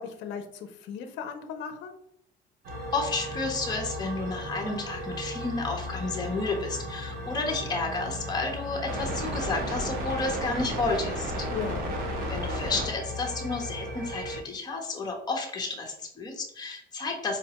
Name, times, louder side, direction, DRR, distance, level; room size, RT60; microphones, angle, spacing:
voice 1, 0.0-1.9 11.5-12.0, left 6 dB, 65° left, 6 dB, 0.5 m, -37 dB
sound 1, 2.6-14.4, equal, 50° right, 0.7 m, -34 dB
voice 2, 2.9-11.5 12.3-17.4, left 3 dB, 20° left, 1 dB, 0.8 m, -31 dB
4.9 x 2.2 x 2.8 m, 0.74 s
cardioid pair, 155°, 20 cm